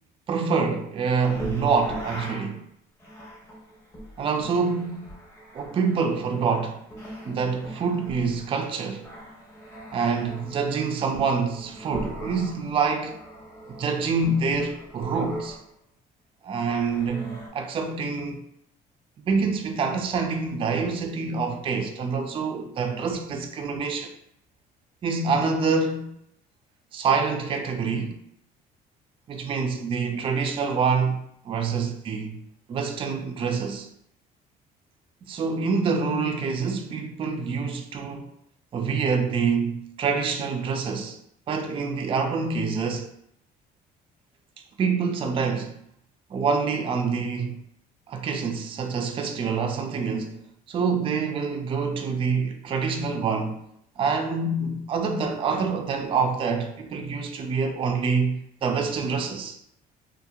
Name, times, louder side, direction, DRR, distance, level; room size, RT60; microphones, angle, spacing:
voice 1, 0.3-2.6 4.2-5.1 5.5-6.8 7.2-9.1 9.9-13.2 13.8-15.6 16.4-18.4 19.3-24.1 25.0-26.1 26.9-28.2 29.3-32.4 32.7-33.9 35.3-38.3 38.7-41.2 41.5-43.1 44.8-45.7 46.3-47.6 48.1-50.4 50.7-53.6 54.0-59.6, right 5 dB, 30° right, 0.3 m, -26 dB
sound 1, 1.2-2.5 3.0-15.7 16.6-17.5, right 1 dB, 15° left, 1.1 m, -41 dB
2.8 x 2.4 x 2.3 m
cardioid pair, 110°, 17 cm